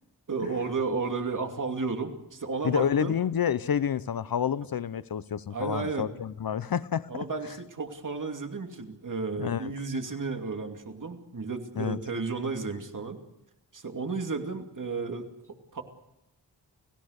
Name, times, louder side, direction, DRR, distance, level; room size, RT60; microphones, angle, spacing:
voice 1, 0.3-3.1 5.5-6.1 7.1-13.2 13.7-15.3 15.7-15.8, right 4 dB, 45° right, 2.7 m, -33 dB
voice 2, 2.6-7.2 9.4-9.7 11.8-12.0, left 8 dB, 55° left, 0.7 m, -29 dB
30.0 x 17.0 x 6.6 m
wide cardioid pair, 120°, 42 cm